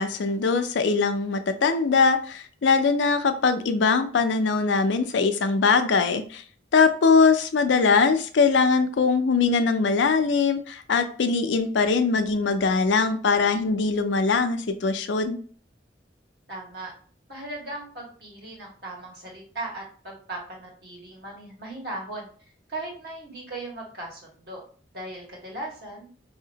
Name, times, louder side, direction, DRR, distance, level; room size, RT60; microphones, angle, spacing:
voice 1, 0.0-6.4 6.7-15.4, left 4 dB, 85° left, 8 dB, 0.5 m, -22 dB
voice 2, 16.5-16.9 17.3-22.3 22.7-24.6 24.9-26.1, right 2 dB, 60° right, -2 dB, 1.5 m, -37 dB
4.1 x 2.8 x 2.8 m, 0.44 s
head